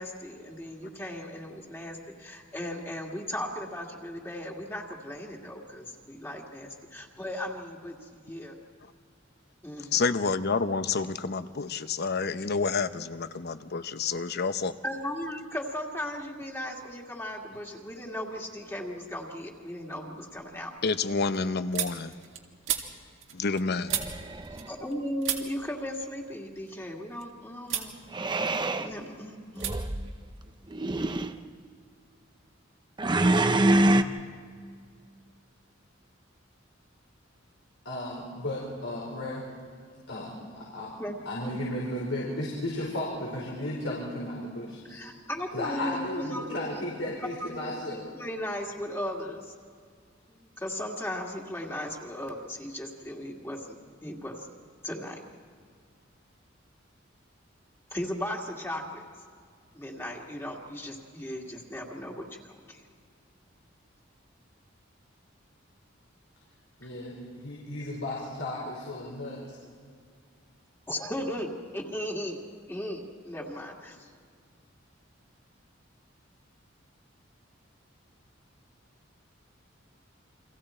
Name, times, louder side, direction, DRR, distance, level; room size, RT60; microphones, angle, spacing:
voice 1, 0.0-8.6 9.6-10.1 14.8-20.7 24.7-27.9 28.8-29.8 41.0-41.3 44.9-49.5 50.3-54.6 54.8-55.2 57.9-59.0 59.7-62.8 70.9-74.1, left 1 dB, 15° left, -1 dB, 2.1 m, -37 dB
voice 2, 9.9-14.7 20.8-22.1 23.3-23.9, left 4 dB, 55° left, 11 dB, 0.8 m, -29 dB
sound 1, 19.0-19.5 19.9-24.9 25.2-27.2 27.6-27.9 28.3-29.0 29.5-29.7 30.0-31.1, right 10 dB, 75° right, 2.2 m, -37 dB
sound 2, 23.9-24.7 28.1-28.9 29.6-30.0 30.7-31.3 33.0-34.0, right 1 dB, 25° right, 0.8 m, -25 dB
voice 3, 37.8-39.4 40.1-40.9 41.2-45.0 45.5-48.0 66.8-69.6, left 1 dB, 90° left, -5 dB, 4.7 m, -34 dB
30.0 x 24.0 x 4.4 m, 2.1 s
head